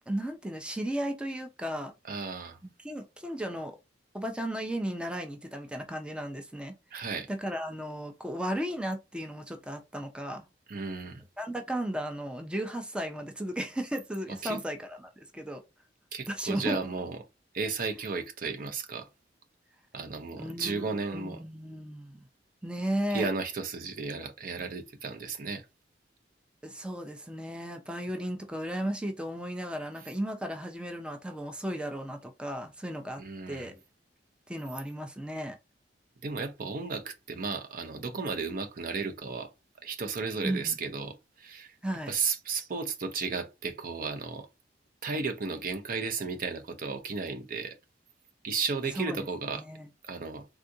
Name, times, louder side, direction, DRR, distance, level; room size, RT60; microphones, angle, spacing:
voice 1, 0.1-1.9 2.6-3.7 4.1-10.5 11.4-15.6 16.3-16.8 20.4-20.9 21.1-22.2 22.6-23.3 26.6-33.8 34.5-35.6 40.4-40.8 41.8-42.1 49.0-49.3 49.6-49.9, right 1 dB, 5° right, 0.5 m, -35 dB
voice 2, 2.1-2.6 6.9-7.3 10.7-11.2 14.4-14.6 16.1-17.2 17.5-19.1 19.9-21.4 23.1-25.6 33.2-33.7 36.2-39.5 39.8-41.7 42.1-44.5 45.0-47.7 48.4-49.6 50.1-50.5, right 4 dB, 50° right, 0.6 m, -34 dB
3.5 x 2.4 x 2.6 m
head